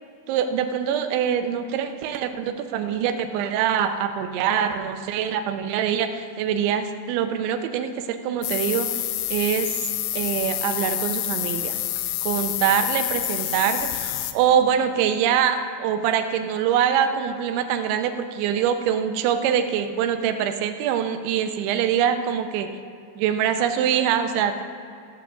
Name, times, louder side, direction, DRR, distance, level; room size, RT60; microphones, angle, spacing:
voice 1, 0.3-8.9 9.3-9.8 10.1-11.7 12.2-22.7 23.2-24.6, right 8 dB, 80° right, 7 dB, 3.0 m, -24 dB
sound 1, 8.4-14.3, left 13 dB, 85° left, 2.8 m, -27 dB
15.5 x 5.5 x 7.6 m, 2.5 s
omnidirectional pair, 5.5 m